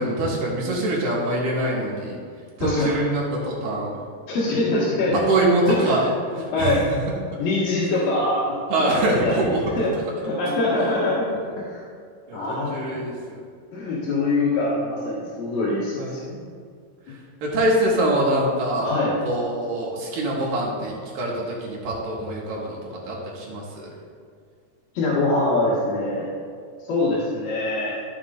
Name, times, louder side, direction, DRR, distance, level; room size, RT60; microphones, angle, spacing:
voice 1, 0.0-2.2 2.6-4.0 5.3-6.1 6.6-7.0 8.7-9.6 12.3-13.1 16.0-16.4 17.4-19.0 19.2-22.8 23.1-23.9, right 1 dB, 85° right, -4 dB, 3.3 m, -24 dB
voice 2, 2.6-2.9 4.3-5.3 5.7-6.9 7.4-8.6 8.8-10.0 10.2-11.4 11.7-11.8 12.3-13.0 13.7-16.2 18.8-19.2 25.0-26.3 26.9-28.0, left 2 dB, 85° left, -11 dB, 3.6 m, -24 dB
14.0 x 7.2 x 2.5 m, 2.2 s
omnidirectional pair, 3.9 m